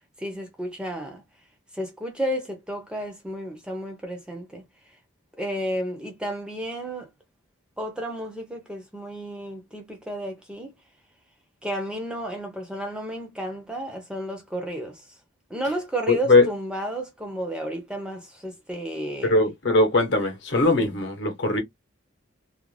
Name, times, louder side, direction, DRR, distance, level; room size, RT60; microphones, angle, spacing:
voice 1, 0.2-1.2 1.7-4.6 5.4-7.1 7.8-10.7 11.6-15.2 15.5-19.3 20.8-21.0, equal, 5° right, 0.4 m, -32 dB
voice 2, 16.1-16.5 19.2-21.6, left 2 dB, 55° left, 0.8 m, -20 dB
2.4 x 2.0 x 3.1 m
head